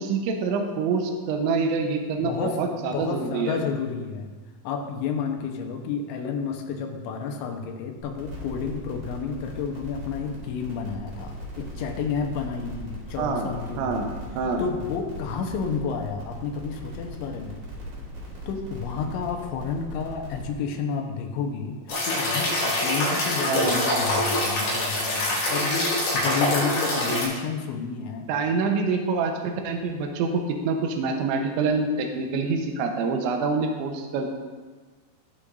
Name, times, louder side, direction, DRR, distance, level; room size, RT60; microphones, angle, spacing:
voice 1, 0.0-3.6 13.2-14.1 14.3-14.6 23.5-23.8 28.3-34.3, right 4 dB, 80° right, 3 dB, 3.2 m, -26 dB
voice 2, 2.2-2.6 2.9-4.3 4.6-14.1 14.6-17.6 18.5-28.3, left 5 dB, 85° left, 3 dB, 3.2 m, -31 dB
sound 1, 8.0-20.5, equal, 45° right, 4.0 m, -39 dB
sound 2, 21.9-27.2, left 1 dB, 55° left, 4.5 m, -25 dB
19.5 x 7.0 x 2.6 m, 1.3 s
omnidirectional pair, 5.4 m